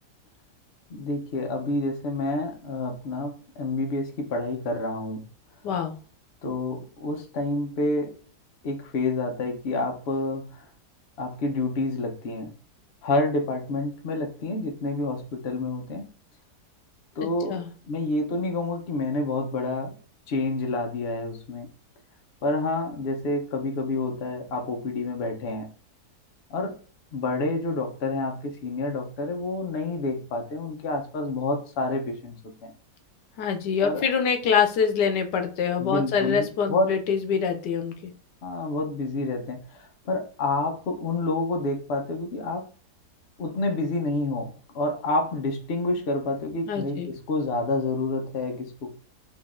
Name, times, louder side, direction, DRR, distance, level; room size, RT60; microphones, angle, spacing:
voice 1, 0.9-5.2 6.4-8.1 8.6-10.6 11.2-12.5 13.0-16.0 17.2-17.6 17.9-19.9 20.3-21.7 22.4-25.7 26.5-26.8 27.1-32.7 33.8-34.0 35.8-36.9 38.4-39.6 40.1-42.7 43.4-49.0, left 2 dB, 50° left, 0.9 m, -28 dB
voice 2, 5.6-5.9 17.5-17.7 33.4-38.1 46.7-47.1, left 6 dB, 85° left, 1.4 m, -25 dB
5.0 x 2.5 x 3.6 m
omnidirectional pair, 1.8 m